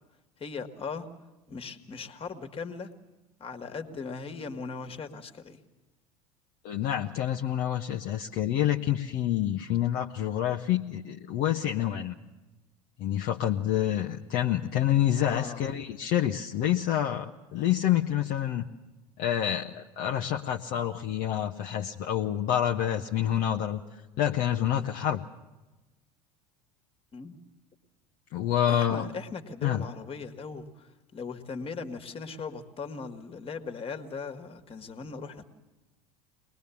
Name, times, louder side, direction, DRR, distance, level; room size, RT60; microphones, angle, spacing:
voice 1, 0.4-1.1 1.5-2.9 3.4-5.6 15.3-15.6 27.1-27.3 28.7-35.4, left 5 dB, 30° left, 7 dB, 1.9 m, -39 dB
voice 2, 6.6-12.1 13.0-18.7 19.2-23.8 24.2-25.2 28.3-29.1 29.6-29.8, left 11 dB, 45° left, 2 dB, 1.0 m, -27 dB
23.0 x 20.5 x 7.1 m, 1.1 s
figure-of-eight pair, 70°, 20 cm